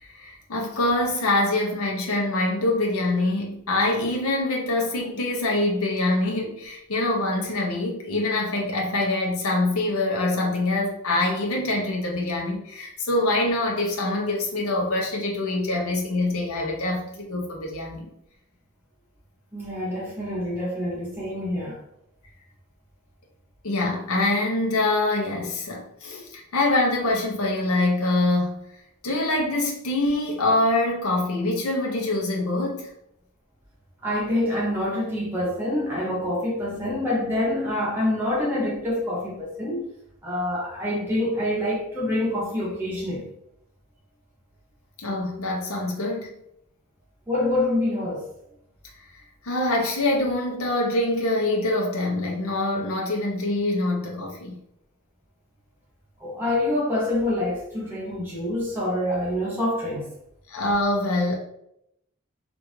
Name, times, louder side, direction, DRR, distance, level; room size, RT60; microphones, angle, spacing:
voice 1, 0.0-18.1 23.6-28.6 29.0-32.9 45.0-46.3 49.4-54.6 60.5-61.4, left 2 dB, 75° left, -1 dB, 0.8 m, -25 dB
voice 2, 19.5-21.8 34.0-39.9 40.2-43.3 47.3-48.3 56.2-60.1, left 1 dB, 10° right, -7 dB, 0.8 m, -26 dB
3.4 x 2.5 x 3.1 m, 0.77 s
head